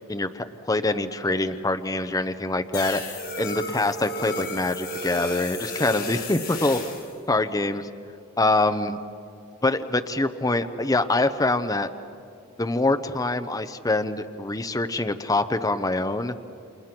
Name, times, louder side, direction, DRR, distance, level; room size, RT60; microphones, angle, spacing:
voice 1, 0.1-3.0 3.4-6.8 7.3-7.9 8.4-9.0 9.6-11.9 12.6-16.4, left 2 dB, 15° left, 9 dB, 0.8 m, -24 dB
sound 1, 2.7-7.1, left 2 dB, 50° left, 4.6 m, -33 dB
29.0 x 28.0 x 6.0 m, 2.4 s
head